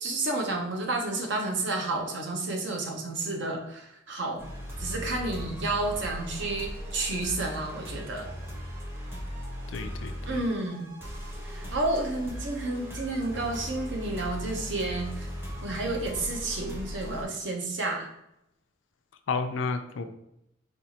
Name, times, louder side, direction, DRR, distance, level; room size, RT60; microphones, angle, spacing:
voice 1, 0.0-4.5 4.8-8.3 10.3-10.9 11.4-15.3 15.6-18.1, right 2 dB, 70° right, 2 dB, 0.7 m, -31 dB
sound 1, 4.4-17.2, equal, 10° right, 0.6 m, -38 dB
voice 2, 9.7-10.4 19.3-20.0, left 4 dB, 75° left, 8 dB, 0.4 m, -31 dB
4.3 x 2.4 x 2.8 m, 0.84 s
head